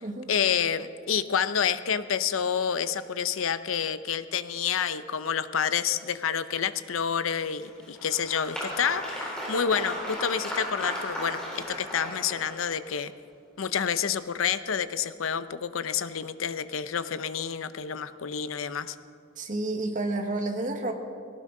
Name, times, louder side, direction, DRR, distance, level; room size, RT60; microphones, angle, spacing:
voice 1, 0.3-11.4 11.7-13.1 13.6-19.0, left 7 dB, 90° left, 13 dB, 0.6 m, -28 dB
Applause, 7.6-12.9, equal, 5° left, 3.7 m, -35 dB
voice 2, 19.3-20.9, right 2 dB, 40° right, 4 dB, 1.3 m, -30 dB
17.5 x 17.5 x 3.8 m, 2.3 s
head